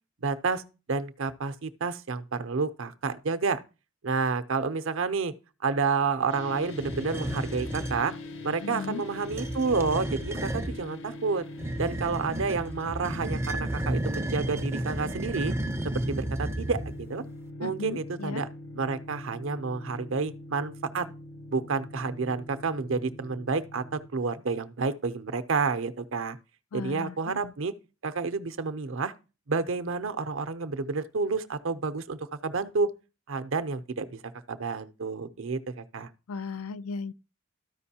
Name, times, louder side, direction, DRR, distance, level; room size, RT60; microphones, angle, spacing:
voice 1, 0.2-0.6 0.9-3.6 4.0-5.3 5.6-8.1 8.4-11.4 11.8-15.5 15.9-17.2 17.6-18.5 18.7-21.1 21.5-26.4 26.7-27.7 28.0-29.1 29.5-32.9 33.3-34.2 34.5-36.1, right 4 dB, 60° right, 0.6 m, -30 dB
sound 1, 6.3-24.1, left 1 dB, 55° left, 0.8 m, -42 dB
sound 2, 6.7-8.0 9.2-10.8 11.6-17.1, right 1 dB, 10° right, 0.4 m, -32 dB
voice 2, 8.6-9.0 17.6-18.4 26.7-27.5 36.3-37.1, left 4 dB, 85° left, 0.4 m, -36 dB
13.0 x 5.2 x 2.8 m
head